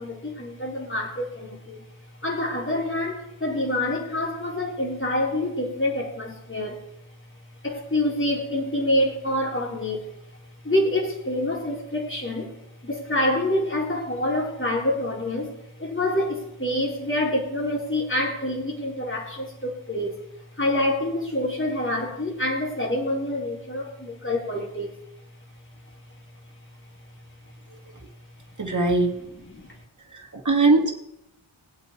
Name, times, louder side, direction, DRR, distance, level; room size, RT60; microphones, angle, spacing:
voice 1, 0.0-1.8 2.2-6.8 7.6-10.1 10.6-12.5 12.8-15.5 15.8-20.2 20.6-25.0 29.4-29.7, left 1 dB, 25° left, -2 dB, 3.8 m, -26 dB
voice 2, 28.6-29.1 30.1-30.9, right 3 dB, 35° right, 1 dB, 2.2 m, -20 dB
20.0 x 8.0 x 4.6 m, 0.82 s
wide cardioid pair, 55°, 50 cm